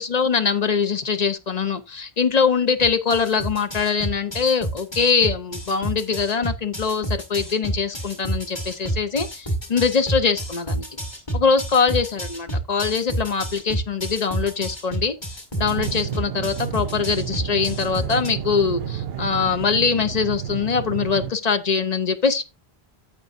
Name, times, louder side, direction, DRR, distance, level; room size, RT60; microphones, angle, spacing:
voice 1, 0.0-10.8 11.3-15.1 15.6-22.4, left 5 dB, 40° left, 0.9 m, -22 dB
sound 1, 2.8-18.3, right 1 dB, 25° left, 1.7 m, -29 dB
sound 2, 15.6-21.3, right 9 dB, 75° right, 0.9 m, -31 dB
14.5 x 5.1 x 2.6 m
omnidirectional pair, 1.1 m